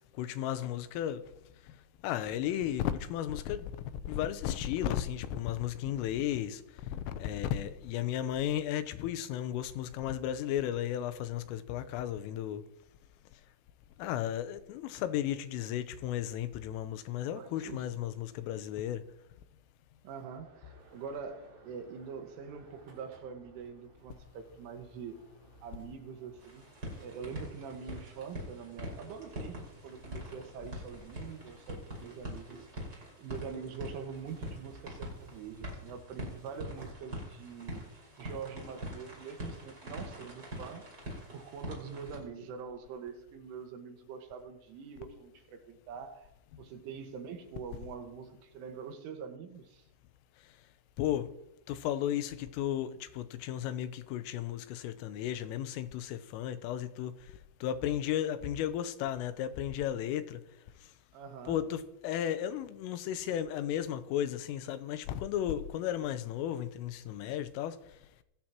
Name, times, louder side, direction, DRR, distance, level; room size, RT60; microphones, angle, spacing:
voice 1, 0.1-1.2 1.6-1.8 2.0-12.7 14.0-19.0 46.5-46.6 51.0-51.3 51.7-60.4 60.8-60.9 61.5-68.0, left 11 dB, 85° left, 3.5 m, -34 dB
voice 2, 17.3-17.9 20.0-25.2 25.6-26.7 27.0-40.9 41.3-46.3 46.6-49.8 61.1-61.6, right 6 dB, 75° right, 4.1 m, -44 dB
sound 1, 20.0-36.9, right 2 dB, 45° right, 6.4 m, -59 dB
sound 2, 26.4-42.2, equal, 20° right, 5.6 m, -44 dB
26.0 x 16.0 x 3.0 m
omnidirectional pair, 5.7 m